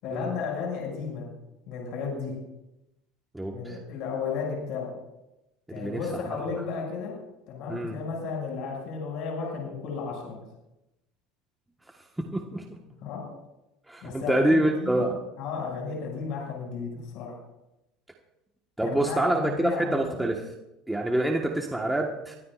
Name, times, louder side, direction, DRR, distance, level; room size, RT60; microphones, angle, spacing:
voice 1, 0.0-1.3 1.7-2.3 3.5-5.0 5.7-7.1 7.5-10.4 13.0-13.3 14.0-15.1 15.4-17.4 18.8-20.3, left 5 dB, 60° left, -1 dB, 6.6 m, -33 dB
voice 2, 3.3-3.8 5.7-6.0 6.3-6.4 7.7-8.0 12.2-12.8 13.9-15.2 18.8-20.5 20.9-22.4, right 1 dB, 5° right, 0 dB, 1.5 m, -26 dB
24.0 x 16.5 x 2.6 m, 0.93 s
supercardioid pair, 120°, 0 cm